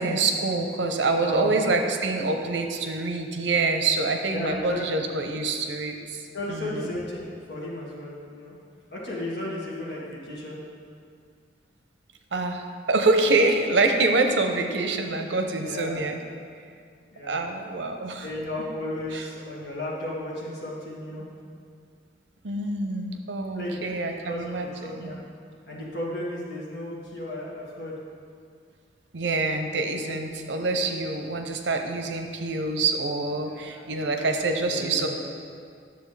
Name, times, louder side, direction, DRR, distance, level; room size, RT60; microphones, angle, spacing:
voice 1, 0.0-6.9 12.3-16.2 17.3-18.3 19.1-19.2 22.4-25.1 29.1-35.1, right 3 dB, 80° right, 5 dB, 0.7 m, -26 dB
voice 2, 1.2-1.5 4.3-5.0 6.3-8.5 8.9-10.6 15.6-16.0 17.1-17.4 18.2-21.2 23.5-25.2 25.7-28.0 33.5-35.1, left 1 dB, 65° left, -5 dB, 1.9 m, -34 dB
10.5 x 6.9 x 3.3 m, 2.2 s
head